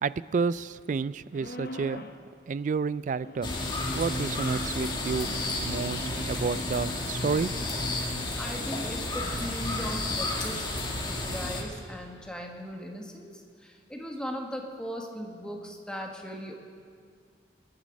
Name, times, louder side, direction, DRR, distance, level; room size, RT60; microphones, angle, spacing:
voice 1, 0.0-2.0 2.5-3.5 3.9-5.3 5.6-7.5, right 5 dB, 45° right, 18 dB, 0.3 m, -30 dB
sound 1, 1.3-2.2 3.2-6.8, left 1 dB, 60° left, 1.0 m, -44 dB
sound 2, 3.4-11.6, left 2 dB, 25° left, 1.7 m, -31 dB
voice 2, 8.4-10.7 11.1-16.6, equal, 5° left, 1 dB, 1.4 m, -38 dB
23.5 x 10.5 x 5.3 m, 2.2 s
head